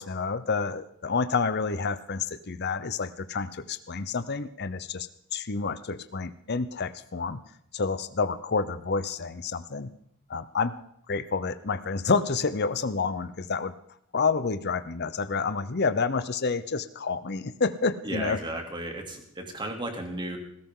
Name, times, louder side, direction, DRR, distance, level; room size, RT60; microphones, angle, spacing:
voice 1, 0.0-7.4 7.7-9.9 10.3-10.8 11.1-13.7 14.1-18.4, left 4 dB, 50° left, 12 dB, 0.7 m, -29 dB
voice 2, 18.0-20.4, right 1 dB, 20° right, 3 dB, 2.9 m, -34 dB
19.0 x 17.0 x 3.8 m, 0.71 s
head